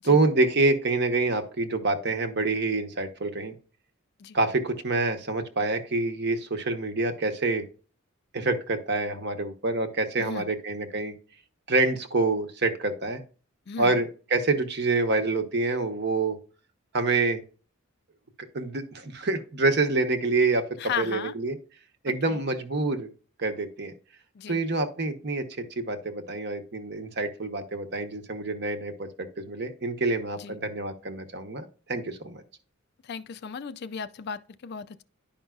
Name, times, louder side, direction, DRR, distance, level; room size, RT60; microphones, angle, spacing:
voice 1, 0.0-3.5 4.3-7.6 8.3-11.1 11.7-13.2 13.8-16.4 16.9-17.4 18.5-21.5 22.0-23.1 23.4-23.9 24.5-29.1 29.4-32.4, right 3 dB, 50° right, 1.0 m, -26 dB
voice 2, 10.2-10.5 13.7-14.0 20.8-21.3 22.3-22.4 24.3-24.6 30.4-30.6 33.0-35.0, left 7 dB, 50° left, 0.4 m, -35 dB
10.5 x 5.3 x 2.4 m
head